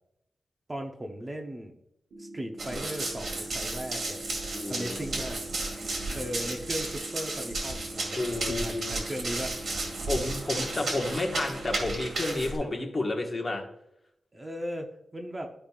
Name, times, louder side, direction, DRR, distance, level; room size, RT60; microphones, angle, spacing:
voice 1, 0.7-1.8 2.2-4.3 4.7-5.4 6.1-9.6 14.3-15.5, equal, 20° right, 3 dB, 0.8 m, -37 dB
sound 1, 2.1-12.1, right 1 dB, 80° right, 1.3 m, -44 dB
Run, 2.6-12.6, right 2 dB, 50° right, 2.1 m, -34 dB
voice 2, 4.5-5.2 8.1-8.9 10.1-13.6, left 2 dB, 35° left, 1 dB, 1.4 m, -31 dB
12.0 x 5.1 x 2.4 m, 0.80 s
wide cardioid pair, 135°, 0 cm